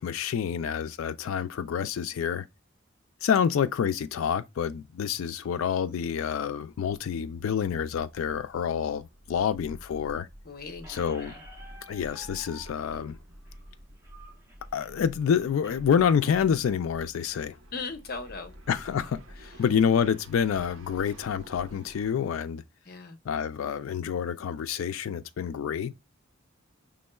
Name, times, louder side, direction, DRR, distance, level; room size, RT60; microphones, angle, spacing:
voice 1, 0.0-2.5 3.2-10.3 10.9-11.3 11.9-13.2 14.7-17.6 18.7-22.6 23.3-25.9, left 7 dB, 80° left, 0.3 m, -28 dB
sound 1, 6.8-22.1, equal, 75° right, 1.0 m, -50 dB
voice 2, 10.5-10.9 17.7-18.5 22.9-23.2, left 4 dB, 50° left, 0.8 m, -37 dB
Squeak, 10.8-15.8, right 1 dB, 15° right, 1.1 m, -51 dB
5.2 x 3.6 x 2.3 m
head